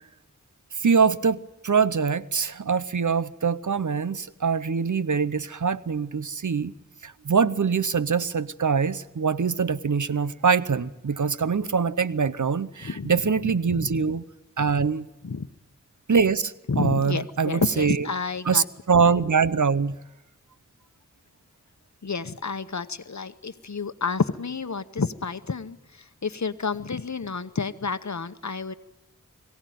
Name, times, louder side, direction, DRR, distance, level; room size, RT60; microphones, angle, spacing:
voice 1, 0.7-6.7 7.0-14.2 14.6-15.1 16.1-18.1 18.5-20.0, right 5 dB, 75° right, 0.7 m, -23 dB
voice 2, 12.8-13.2 13.7-14.0 15.2-15.5 16.7-18.6 22.0-28.7, left 4 dB, 65° left, 0.9 m, -30 dB
22.5 x 16.5 x 9.2 m
wide cardioid pair, 45°, 30 cm